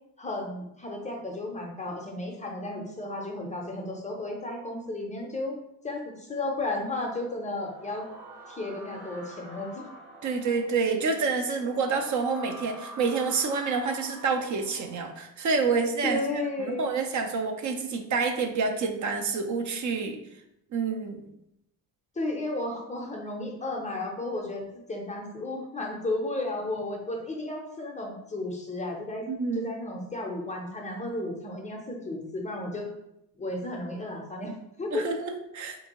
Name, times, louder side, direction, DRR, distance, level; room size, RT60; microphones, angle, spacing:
voice 1, 0.2-5.6 5.8-8.1 8.5-9.8 16.0-16.8 22.2-29.3 29.5-32.9 33.4-35.1, left 2 dB, 20° left, 1 dB, 0.5 m, -33 dB
sound 1, 7.1-15.1, right 1 dB, 80° right, 0.9 m, -47 dB
voice 2, 10.2-16.2 16.6-20.2 20.7-21.2 29.3-29.7 34.9-35.9, right 4 dB, 50° right, 5 dB, 0.5 m, -28 dB
3.5 x 2.6 x 2.9 m, 0.82 s
cardioid pair, 115°, 37 cm